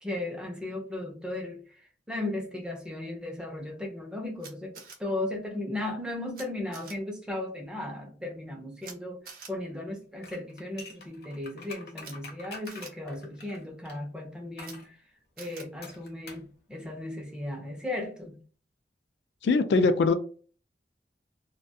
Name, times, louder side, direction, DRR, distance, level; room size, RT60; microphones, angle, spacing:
voice 1, 0.0-4.7 5.0-9.2 9.5-15.0 15.4-18.4, left 1 dB, 5° right, 0.5 m, -36 dB
Camera, 4.4-5.0 6.3-6.4 6.7-6.9 8.8-8.9 9.2-9.5 12.0-12.1 12.6-12.9 14.6-14.7 15.4-15.6, right 5 dB, 55° right, 0.6 m, -46 dB
sound 1, 10.2-14.0 14.6-14.9 15.8-16.5 16.7-16.8, left 3 dB, 60° left, 0.7 m, -46 dB
voice 2, 19.4-20.1, left 3 dB, 75° left, 0.3 m, -22 dB
2.3 x 2.2 x 2.6 m
head